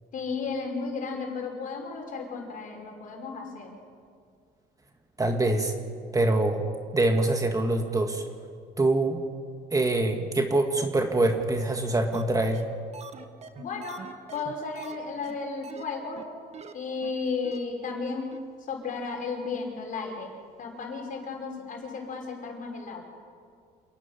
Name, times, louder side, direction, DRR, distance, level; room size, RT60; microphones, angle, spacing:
voice 1, 0.1-3.8 13.6-14.0 14.3-16.2 16.7-18.3 18.6-23.0, left 4 dB, 50° left, 1 dB, 5.4 m, -34 dB
voice 2, 5.2-5.7 6.1-6.7 6.9-8.2 8.8-9.2 9.7-12.6, right 2 dB, 20° right, 5 dB, 1.7 m, -24 dB
sound 1, 12.1-12.2 12.5-12.6 12.9-15.0 15.2-15.3 15.6-15.8 16.2-16.3 16.5-16.7 17.0-17.1 17.4-17.6 17.9-18.0 18.3-18.4, right 6 dB, 40° right, 1.6 m, -43 dB
27.5 x 11.0 x 9.7 m, 2.2 s
cardioid pair, 110°, 17 cm